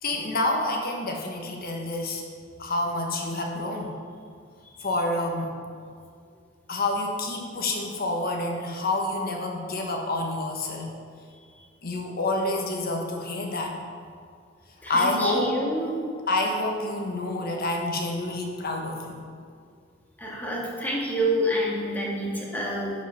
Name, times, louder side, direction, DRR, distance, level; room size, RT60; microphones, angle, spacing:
voice 1, 0.0-2.2 2.6-4.0 4.8-5.6 6.7-10.9 11.8-13.8 14.9-15.6 16.3-19.2, left 2 dB, 50° left, 1 dB, 1.3 m, -28 dB
voice 2, 14.8-15.9 20.2-22.9, equal, 10° left, -4 dB, 1.8 m, -28 dB
11.0 x 5.4 x 5.8 m, 2.2 s
head